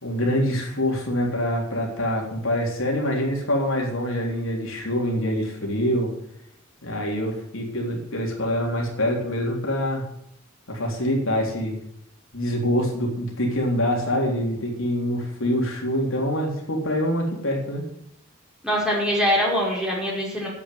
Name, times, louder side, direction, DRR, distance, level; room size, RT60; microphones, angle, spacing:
voice 1, 0.0-6.1 6.8-10.0 10.7-11.8 12.3-17.8, equal, 70° left, -1 dB, 3.8 m, -25 dB
voice 2, 18.6-20.5, equal, 5° right, -5 dB, 5.4 m, -23 dB
10.5 x 8.7 x 9.5 m, 0.75 s
head